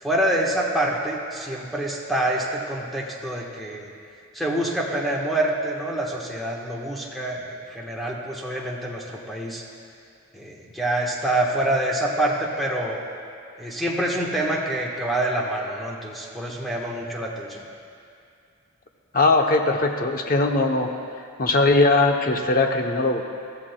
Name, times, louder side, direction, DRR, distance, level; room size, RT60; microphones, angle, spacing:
voice 1, 0.0-3.9 4.3-9.6 10.3-13.0 13.6-17.6, right 1 dB, ahead, -3 dB, 1.2 m, -26 dB
voice 2, 19.1-20.9 21.4-23.2, left 2 dB, 40° left, 4 dB, 0.7 m, -20 dB
21.0 x 13.5 x 2.2 m, 2.4 s
head